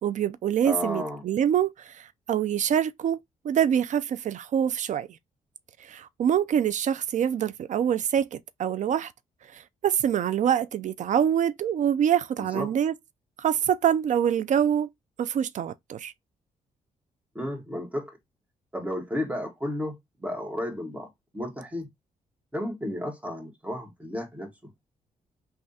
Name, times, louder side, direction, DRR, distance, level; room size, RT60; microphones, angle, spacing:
voice 1, 0.0-3.2 3.4-5.1 5.8-9.1 9.5-12.9 13.4-14.9 15.2-16.1, right 9 dB, 55° right, 0.4 m, -25 dB
voice 2, 0.6-1.2 12.5-12.7 17.3-18.2 18.7-21.9 22.5-24.7, left 1 dB, 10° right, 1.7 m, -33 dB
3.3 x 2.3 x 4.1 m
cardioid pair, 75°, 15 cm